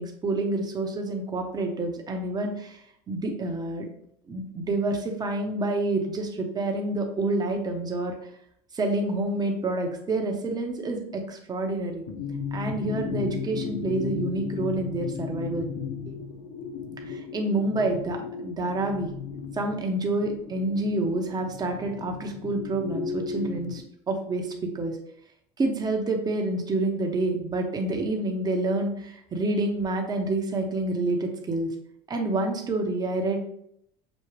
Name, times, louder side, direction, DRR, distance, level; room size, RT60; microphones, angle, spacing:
voice 1, 0.0-2.8 3.1-3.9 4.3-8.2 8.7-12.0 12.5-15.7 16.1-16.2 17.0-19.1 19.5-25.0 25.6-31.7 32.1-33.4, right 2 dB, 30° right, 2 dB, 1.1 m, -28 dB
sound 1, 12.1-23.8, left 6 dB, 80° left, 0.6 m, -35 dB
6.3 x 2.5 x 3.2 m, 0.72 s
supercardioid pair, 90°, 14 cm